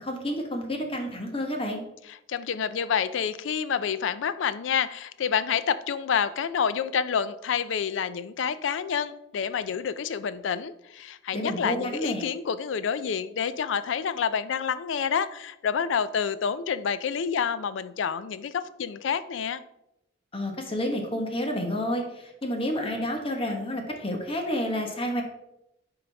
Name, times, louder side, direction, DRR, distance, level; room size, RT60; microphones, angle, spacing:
voice 1, 0.0-1.8 11.3-12.2 20.3-25.2, equal, 30° left, 3 dB, 1.1 m, -30 dB
voice 2, 2.1-19.6, left 7 dB, 80° left, 15 dB, 0.4 m, -28 dB
10.0 x 3.9 x 3.4 m, 0.86 s
head